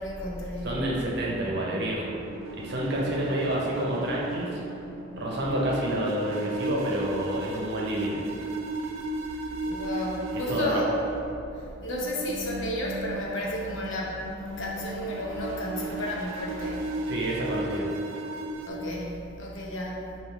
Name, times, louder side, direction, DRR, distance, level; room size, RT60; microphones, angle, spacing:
voice 1, 0.0-0.8 9.7-11.0 11.5-16.9 18.7-20.2, left 1 dB, 70° left, -3 dB, 0.7 m, -32 dB
voice 2, 0.6-2.2 2.5-4.6 5.2-8.2 10.5-10.8 17.1-17.9, right 1 dB, 60° right, -4 dB, 0.8 m, -29 dB
sound 1, 1.2-18.7, right 2 dB, 90° right, 0.4 m, -36 dB
3.6 x 2.5 x 4.5 m, 2.6 s
head